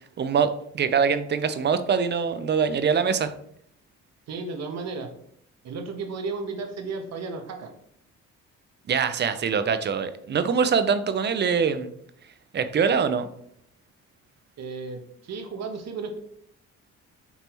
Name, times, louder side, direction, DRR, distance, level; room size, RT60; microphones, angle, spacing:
voice 1, 0.2-3.3 8.9-11.9 12.5-13.3, right 6 dB, 35° right, 11 dB, 0.4 m, -23 dB
voice 2, 4.3-5.1 5.6-7.7 14.6-16.2, right 4 dB, 60° right, 5 dB, 0.9 m, -34 dB
5.4 x 2.9 x 2.9 m, 0.67 s
cardioid pair, 90°, 30 cm